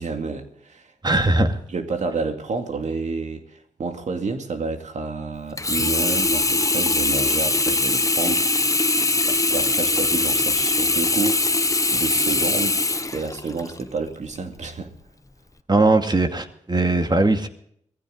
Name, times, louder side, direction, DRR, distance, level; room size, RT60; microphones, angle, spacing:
voice 1, 0.0-0.9 1.7-8.5 8.9-11.5 11.9-12.8 13.1-14.9, right 4 dB, 65° right, 2.3 m, -29 dB
voice 2, 1.0-1.6 15.7-17.5, right 2 dB, 35° right, 2.3 m, -19 dB
Sink (filling or washing), 5.6-13.8 14.4-14.5, left 2 dB, 25° left, 1.0 m, -21 dB
19.5 x 15.0 x 3.9 m
supercardioid pair, 45°, 13 cm